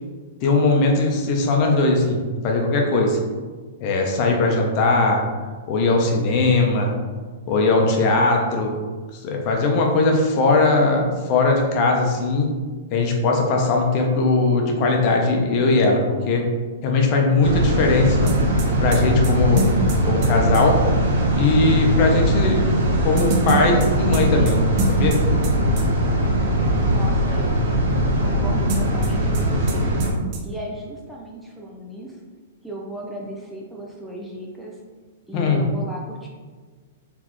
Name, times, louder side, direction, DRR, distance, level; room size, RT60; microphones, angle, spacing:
voice 1, 0.4-3.2 3.8-5.3 5.7-6.9 7.5-8.8 9.2-12.5 12.9-16.5 16.8-18.3 18.8-19.7 20.0-20.8 21.4-22.6 23.0-24.6 24.9-25.2 35.3-35.6, left 3 dB, 40° left, 1 dB, 0.8 m, -19 dB
sound 1, 17.4-30.1, right 1 dB, 75° right, 1.0 m, -20 dB
sound 2, 18.3-20.6 23.2-25.5 25.8-25.9 28.7-29.4 29.7-29.8 30.0-30.4, right 3 dB, 40° right, 0.7 m, -27 dB
voice 2, 26.9-27.7 28.2-29.9 30.4-32.2 32.6-34.8 35.3-36.3, right 1 dB, ahead, -3 dB, 0.5 m, -35 dB
4.0 x 3.4 x 3.1 m, 1.4 s
hypercardioid pair, 140°, 0 cm